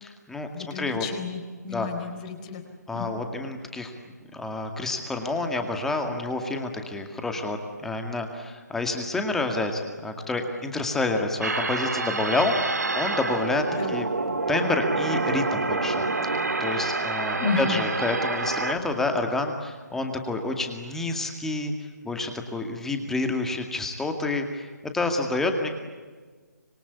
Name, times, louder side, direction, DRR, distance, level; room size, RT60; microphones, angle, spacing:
voice 1, 0.0-0.5 0.7-1.0 1.7-1.9 2.9-3.9 4.3-14.1 14.5-21.7 22.0-24.7 24.9-25.7, left 2 dB, 5° left, 5 dB, 2.1 m, -28 dB
voice 2, 0.5-2.6 2.9-3.1 13.7-13.9 17.4-17.9, left 4 dB, 25° left, 5 dB, 4.2 m, -31 dB
sound 1, 11.4-18.7, right 3 dB, 65° right, 2.9 m, -27 dB
26.5 x 23.0 x 8.6 m, 1.5 s
figure-of-eight pair, 145°, 10 cm